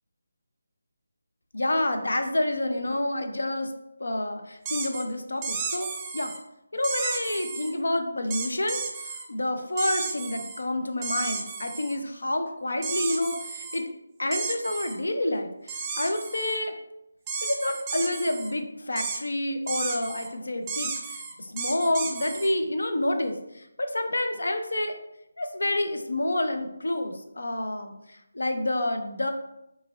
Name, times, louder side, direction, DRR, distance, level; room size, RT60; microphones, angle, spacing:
voice 1, 1.5-3.7 4.0-5.9 6.1-6.3 6.7-13.9 14.2-16.7 17.4-25.0 25.4-27.9 28.3-29.3, left 1 dB, 70° left, 6 dB, 0.6 m, -28 dB
sound 1, 4.6-5.0 5.4-6.4 6.8-7.7 8.3-9.2 9.8-10.6 11.0-12.0 12.8-13.8 14.3-15.0 15.7-16.6 17.3-18.5 19.0-19.2 19.7-20.3 20.7-22.5, right 5 dB, 15° right, 0.5 m, -33 dB
5.4 x 3.1 x 2.5 m, 0.85 s
figure-of-eight pair, 155°, 0 cm